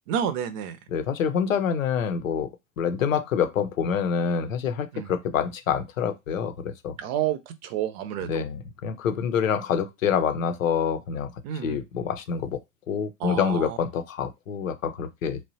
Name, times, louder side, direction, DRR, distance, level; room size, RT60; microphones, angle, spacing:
voice 1, 0.1-0.8 4.9-5.1 7.0-8.5 11.4-11.8 13.2-13.8, right 9 dB, 55° right, 0.6 m, -30 dB
voice 2, 0.9-2.5 2.8-6.9 8.3-11.3 11.6-12.6 12.9-15.4, left 7 dB, 85° left, 0.6 m, -26 dB
3.0 x 2.1 x 2.7 m
hypercardioid pair, 85°, 39 cm